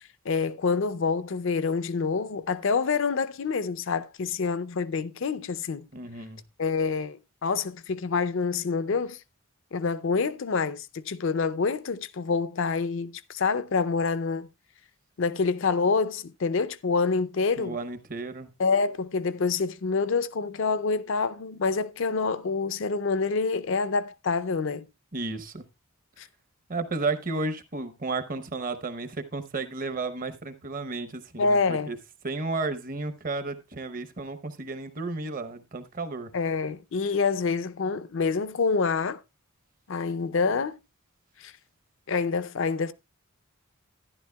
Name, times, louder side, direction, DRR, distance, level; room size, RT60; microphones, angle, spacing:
voice 1, 0.0-5.9 6.6-9.2 9.7-14.5 15.2-17.8 18.6-24.8 26.2-26.3 31.4-31.9 36.3-39.2 39.9-40.8 41.4-41.5 42.1-42.9, left 4 dB, 55° left, 0.5 m, -27 dB
voice 2, 5.9-6.4 17.6-18.5 25.1-25.6 26.7-32.0 32.2-36.3, right 3 dB, 40° right, 0.7 m, -33 dB
12.0 x 11.0 x 2.2 m
head